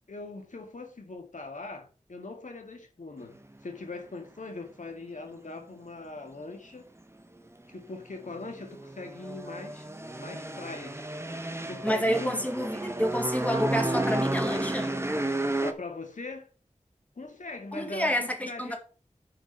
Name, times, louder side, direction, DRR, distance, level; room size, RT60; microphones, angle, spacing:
voice 1, 0.1-6.9 7.7-9.9 10.2-11.1 11.7-12.5 15.6-16.5 17.2-18.8, left 3 dB, 80° left, 2.2 m, -41 dB
sound 1, 8.1-15.7, right 1 dB, 20° right, 1.2 m, -32 dB
voice 2, 11.8-14.9 17.7-18.8, equal, 10° left, 2.6 m, -29 dB
8.7 x 5.0 x 5.5 m
wide cardioid pair, 55°, 13 cm